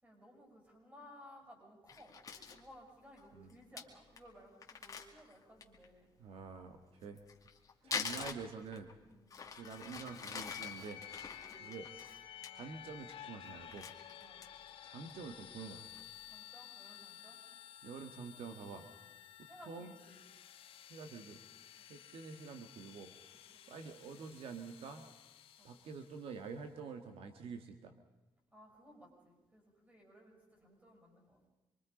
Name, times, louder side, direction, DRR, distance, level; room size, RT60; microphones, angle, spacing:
voice 1, 0.0-6.1 7.8-8.3 9.1-9.3 11.4-11.8 14.1-14.5 16.2-17.4 19.4-20.3 21.8-22.0 23.5-23.6 25.6-25.8 28.5-31.4, equal, 15° right, 0 dB, 7.6 m, -59 dB
Crumpling crinkling, 1.9-2.6 3.2-3.3 3.5-3.6 3.8-3.9 4.2-4.3 4.6-5.9 7.0-8.9 9.3-12.5 12.9-13.2 13.5-14.7 15.1-15.2 15.6-16.0, left 5 dB, 35° left, 2.3 m, -45 dB
voice 2, 6.2-7.2 7.8-8.9 9.5-11.0 11.6-11.9 12.5-13.9 14.8-15.8 17.8-18.9 19.7-19.9 20.9-21.4 21.9-23.1 23.7-25.1 25.6-27.9, right 5 dB, 75° right, 7 dB, 1.8 m, -47 dB
sound 1, 9.6-26.3, left 11 dB, 75° left, 1.4 m, -53 dB
26.5 x 23.5 x 5.3 m, 1.1 s
cardioid pair, 155°, 10 cm